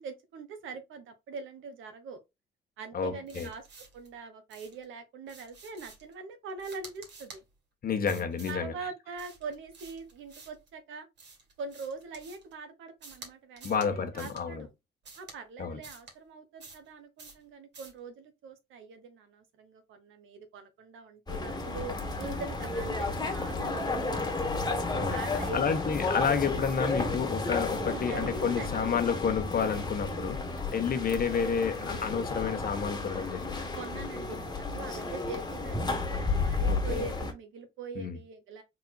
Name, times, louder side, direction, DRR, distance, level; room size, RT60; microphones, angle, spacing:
voice 1, 0.0-2.2 2.8-3.7 3.9-7.4 8.5-11.1 11.6-14.7 15.2-24.3 25.1-25.8 27.6-29.1 30.1-30.4 33.7-38.6, right 4 dB, 80° right, 1.4 m, -43 dB
voice 2, 2.9-3.5 7.8-8.7 13.6-14.7 15.6-15.8 24.9-30.4 30.7-33.7 36.7-37.0 38.0-38.2, left 6 dB, 50° left, 1.2 m, -30 dB
sound 1, 3.3-4.1 4.5-4.9 5.3-6.1 6.6-7.4 8.1-8.6 9.2-10.7 11.2-12.5 13.0-13.3 13.6-13.9 14.2-14.4 15.0-15.4 15.8-16.1 16.6-16.9 17.2-17.4 17.7-18.0, right 4 dB, 60° right, 2.5 m, -50 dB
sound 2, 21.3-37.3, left 3 dB, 20° left, 1.5 m, -32 dB
4.1 x 4.1 x 2.3 m
cardioid pair, 90°, 20 cm